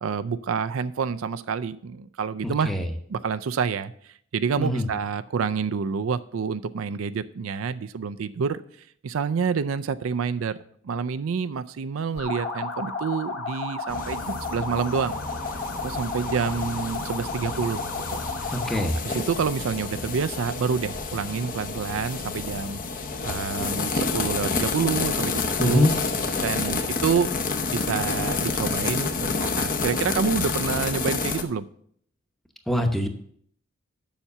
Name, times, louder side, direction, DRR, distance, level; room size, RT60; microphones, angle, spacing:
voice 1, 0.0-2.8 3.1-8.6 9.0-10.6 10.8-15.2 15.8-17.8 18.1-18.5 19.0-22.8 23.2-25.9 26.4-27.3 27.7-31.7, right 6 dB, 80° right, 11 dB, 0.4 m, -28 dB
voice 2, 2.4-2.9 4.6-4.9 18.5-19.0 25.6-25.9 32.7-33.1, left 1 dB, ahead, 5 dB, 0.8 m, -23 dB
sound 1, 12.2-19.0, left 3 dB, 85° left, 2.5 m, -33 dB
sound 2, 13.9-31.4, left 4 dB, 40° left, 0.7 m, -29 dB
7.2 x 5.8 x 6.6 m, 0.64 s
head